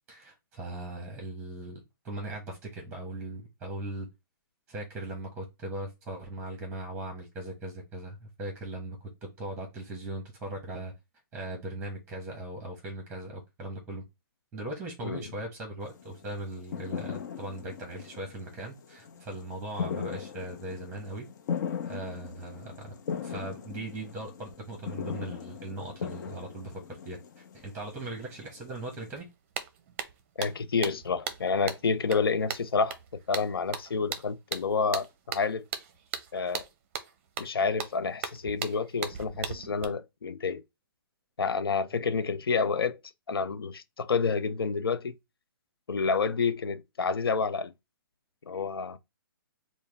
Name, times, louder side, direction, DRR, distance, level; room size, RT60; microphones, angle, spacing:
voice 1, 0.1-4.1 4.7-10.9 11.3-14.0 14.5-21.3 21.8-22.9 23.2-29.3, right 1 dB, 10° right, 1.0 m, -39 dB
sound 1, 15.8-29.1, left 7 dB, 50° left, 0.8 m, -39 dB
sound 2, 29.2-29.3 29.5-39.8, right 7 dB, 35° right, 0.6 m, -38 dB
voice 2, 30.4-33.0 33.3-35.6 36.3-36.6 37.4-40.6 41.4-43.0 43.3-45.2 45.9-47.7 48.5-49.0, left 5 dB, 90° left, 0.6 m, -29 dB
4.6 x 2.1 x 3.4 m
hypercardioid pair, 150°, 12 cm